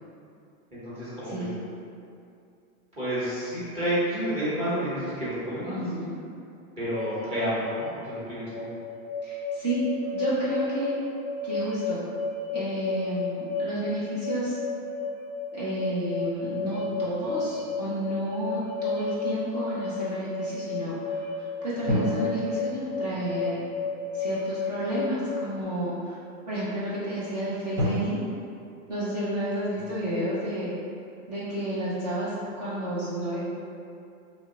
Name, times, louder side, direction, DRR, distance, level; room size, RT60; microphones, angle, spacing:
voice 1, 0.7-1.5 3.0-5.8 6.8-8.7 29.7-29.8, right 1 dB, 15° right, -12 dB, 0.7 m, -30 dB
voice 2, 5.7-6.1 9.2-9.8 10.1-10.9 11.4-12.0 12.5-14.6 15.5-23.6 24.1-26.2 26.5-28.2 28.9-30.7 31.3-33.4, right 1 dB, 30° right, -9 dB, 0.4 m, -31 dB
sound 1, 6.9-25.6, left 4 dB, 25° left, 0.5 m, -32 dB
sound 2, 16.4-19.0 21.9-25.2 25.9-26.0 27.8-27.9, left 1 dB, 65° right, 1.1 m, -35 dB
2.9 x 2.1 x 3.6 m, 2.5 s
supercardioid pair, 165°, 43 cm